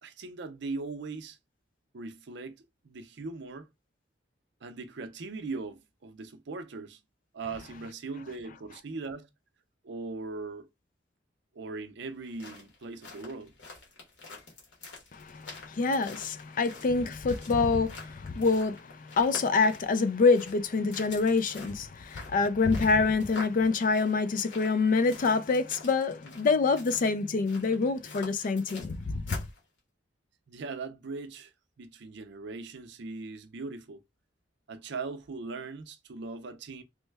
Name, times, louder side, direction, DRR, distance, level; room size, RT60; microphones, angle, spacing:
voice 1, 0.0-1.4 1.9-3.7 4.6-7.0 7.3-9.3 9.8-10.7 11.5-13.5 30.5-31.5 31.8-34.0 34.7-36.8, right 3 dB, 65° right, 0.5 m, -39 dB
sound 1, 12.1-29.6, left 3 dB, 75° left, 1.3 m, -47 dB
voice 2, 15.1-29.4, left 4 dB, 45° left, 0.4 m, -26 dB
3.1 x 2.1 x 3.3 m
head